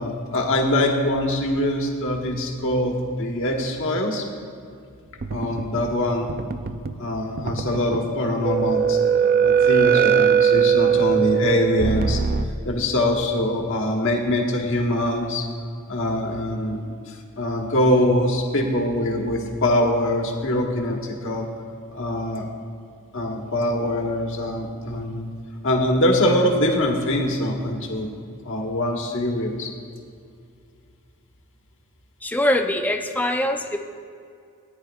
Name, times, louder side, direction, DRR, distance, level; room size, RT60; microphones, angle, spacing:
voice 1, 0.0-4.3 5.3-6.3 7.0-9.0 9.4-12.2 12.6-15.5 15.9-16.9 17.4-21.4 21.9-22.5 23.1-25.3 25.6-28.1 28.4-29.7, left 1 dB, 60° left, 1 dB, 1.4 m, -23 dB
sound 1, 5.2-6.0 6.3-7.1 7.4-8.0 8.4-12.4, right 7 dB, 40° right, 0.4 m, -20 dB
voice 2, 32.2-33.8, left 1 dB, 10° left, 4 dB, 0.6 m, -23 dB
18.5 x 9.9 x 2.4 m, 2.4 s
head